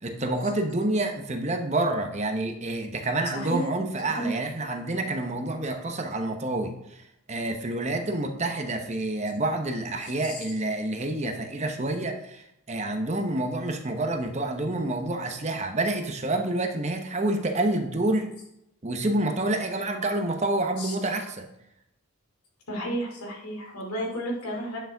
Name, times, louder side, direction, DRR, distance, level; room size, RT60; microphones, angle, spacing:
voice 1, 0.0-7.0 7.3-18.3 18.8-21.5, right 2 dB, 30° right, 5 dB, 0.8 m, -28 dB
voice 2, 3.3-3.7 4.0-4.3 10.2-10.4 20.8-21.0 22.7-24.8, equal, 90° left, 0 dB, 2.6 m, -32 dB
9.9 x 6.3 x 3.4 m, 0.82 s
head